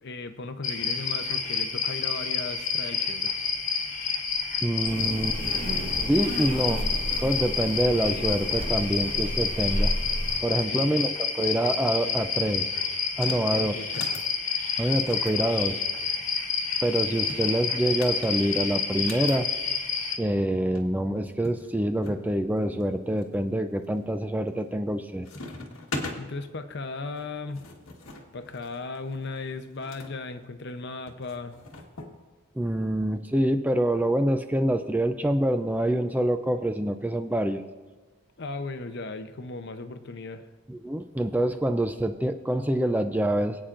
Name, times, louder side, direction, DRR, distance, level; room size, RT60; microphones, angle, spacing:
voice 1, 0.0-3.4 10.7-10.9 13.3-14.1 26.2-27.6 28.3-31.6 38.4-40.5, left 3 dB, 55° left, 9 dB, 0.7 m, -37 dB
sound 1, 0.6-20.2, left 5 dB, 35° left, 1.3 m, -29 dB
voice 2, 4.6-5.4 6.1-6.9 7.2-9.9 10.4-12.7 13.2-13.8 14.8-15.8 16.8-19.5 20.2-25.3 32.6-37.6 40.7-43.6, right 1 dB, 10° right, 8 dB, 0.4 m, -26 dB
sound 2, 4.8-10.4, equal, 45° right, 1.7 m, -32 dB
sound 3, 13.1-13.5 13.8-14.3 14.9-16.3 17.1-19.4 20.5-20.6 20.7-20.9 21.4-22.2 22.8-23.3 23.8-24.2 24.5-25.0 25.2-26.2 27.2-30.1 31.1-32.1, left 2 dB, 80° left, 1.5 m, -41 dB
25.0 x 8.7 x 2.5 m, 1.3 s
head